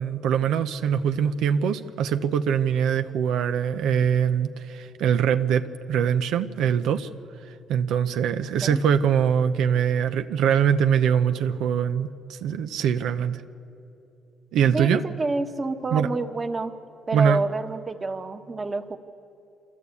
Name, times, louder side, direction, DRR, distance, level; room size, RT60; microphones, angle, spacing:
voice 1, 0.0-7.1 7.7-13.4 14.5-15.0 15.9-16.1 17.1-17.4, right 8 dB, 85° right, 8 dB, 0.7 m, -23 dB
voice 2, 14.7-16.7 17.1-19.0, right 3 dB, 30° right, 6 dB, 1.4 m, -28 dB
27.5 x 14.0 x 8.4 m, 2.8 s
cardioid pair, 90°, 0 cm